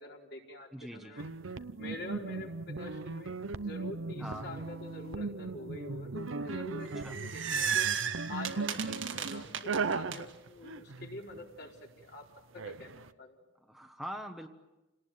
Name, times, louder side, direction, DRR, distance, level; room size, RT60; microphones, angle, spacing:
voice 1, 0.0-3.4 3.6-7.9 8.3-12.3 12.5-13.4, left 2 dB, 60° left, 0 dB, 4.4 m, -46 dB
voice 2, 0.7-1.1 4.2-4.5 7.0-7.2 8.8-9.0 13.6-14.5, equal, ahead, 5 dB, 1.2 m, -43 dB
sound 1, 1.2-11.7 12.6-13.1, right 4 dB, 80° right, 0.8 m, -38 dB
sound 2, 6.9-10.2, right 7 dB, 65° right, 1.8 m, -33 dB
28.5 x 19.0 x 9.4 m, 1.1 s
head